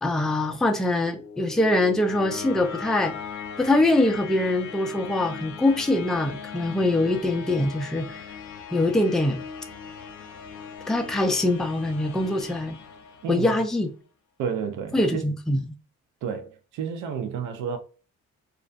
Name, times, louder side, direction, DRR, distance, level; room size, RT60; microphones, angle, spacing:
voice 1, 0.0-3.1 3.6-8.2 8.7-9.4 10.9-12.8 13.3-13.9 14.9-15.6, left 2 dB, ahead, 0.4 m, -23 dB
sound 1, 0.7-13.7, left 6 dB, 70° left, 0.6 m, -39 dB
voice 2, 13.2-13.6 14.4-15.3 16.2-17.8, right 7 dB, 85° right, 0.6 m, -31 dB
2.4 x 2.1 x 2.5 m
cardioid pair, 90°, 30 cm